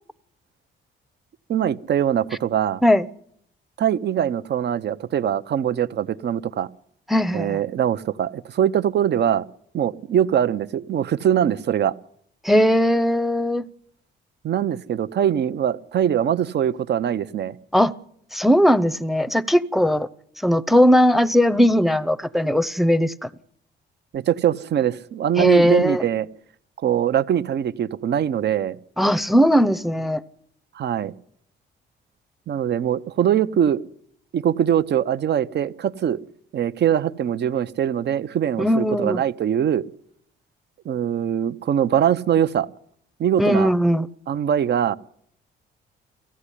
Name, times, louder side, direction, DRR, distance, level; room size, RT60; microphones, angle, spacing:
voice 1, 1.5-2.8 3.8-6.7 7.3-9.5 9.7-12.0 14.4-17.5 24.1-26.3 26.8-28.8 30.7-31.1 32.5-33.8 34.3-36.2 36.5-39.8 40.8-42.7 43.2-43.7 44.3-45.0, right 9 dB, 60° right, 0.8 m, -22 dB
voice 2, 7.1-7.6 12.4-13.6 17.7-17.9 18.3-20.1 20.4-23.3 25.4-26.0 29.0-30.2 38.6-39.2 43.4-44.1, equal, ahead, 0.7 m, -18 dB
17.0 x 15.0 x 10.0 m
cardioid pair, 90°, 20 cm